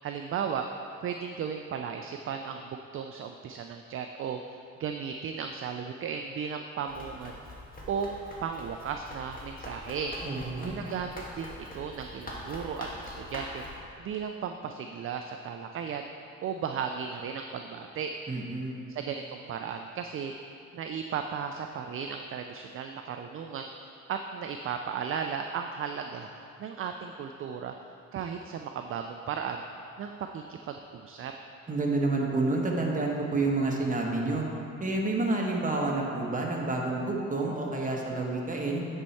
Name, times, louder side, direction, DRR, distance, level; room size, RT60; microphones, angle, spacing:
voice 1, 0.0-0.7 1.0-4.4 4.8-7.4 7.9-8.1 8.4-10.1 10.6-13.6 14.0-16.1 16.4-18.1 18.9-20.3 20.7-23.7 24.1-26.3 26.6-27.7 28.1-29.6 30.0-31.3, right 7 dB, 45° right, 5 dB, 0.4 m, -35 dB
Run, 6.9-13.8, left 1 dB, 30° left, 1.4 m, -43 dB
voice 2, 10.2-10.7 18.3-18.8 31.7-34.4 34.8-38.9, right 2 dB, 25° right, -1 dB, 1.2 m, -29 dB
9.6 x 4.5 x 4.2 m, 2.6 s
cardioid pair, 90°, 30 cm